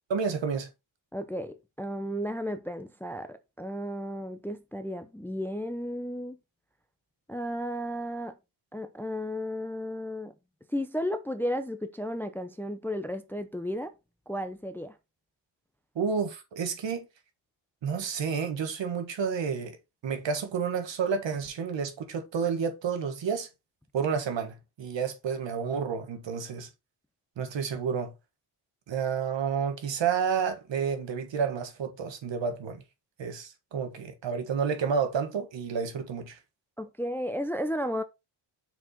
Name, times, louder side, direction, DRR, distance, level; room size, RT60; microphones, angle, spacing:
voice 1, 0.1-0.7 16.0-17.1 17.8-19.8 20.0-23.5 23.9-26.7 27.4-28.1 28.9-32.8 33.2-36.4, right 6 dB, 60° right, 1.7 m, -30 dB
voice 2, 1.1-6.4 7.3-8.4 8.7-10.3 10.7-13.9 14.3-15.0 36.8-38.0, equal, 5° left, 0.5 m, -33 dB
6.2 x 4.8 x 4.1 m
cardioid pair, 110°, 49 cm